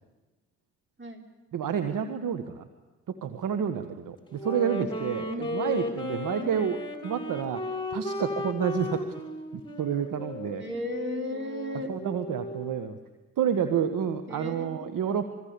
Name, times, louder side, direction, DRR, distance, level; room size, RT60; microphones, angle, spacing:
voice 1, 1.5-2.6 3.2-9.0 9.5-10.6 11.9-13.0 13.4-15.2, right 8 dB, 55° right, 8 dB, 1.6 m, -29 dB
Wind instrument woodwind instrument, 4.3-13.0, left 1 dB, 10° left, 4.1 m, -35 dB
voice 2, 10.6-11.9 14.3-14.7, left 1 dB, 30° right, 3 dB, 4.7 m, -35 dB
25.0 x 23.0 x 7.0 m, 1.2 s
hypercardioid pair, 55°, 39 cm